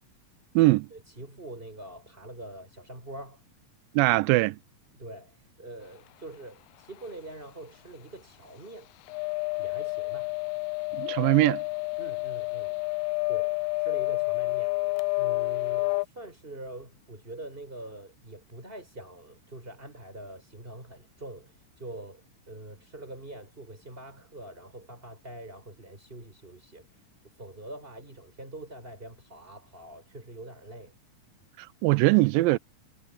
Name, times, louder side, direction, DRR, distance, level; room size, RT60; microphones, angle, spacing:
voice 1, 0.6-3.4 4.9-8.9 9.6-10.3 12.0-12.8 13.3-14.8 15.2-30.9, right 1 dB, 15° right, 6.5 m, -44 dB
voice 2, 3.9-4.6 10.9-11.6 31.6-32.6, right 20 dB, 90° right, 2.3 m, -21 dB
sound 1, 9.1-16.1, left 26 dB, 80° left, 2.1 m, -29 dB
omnidirectional pair, 4.0 m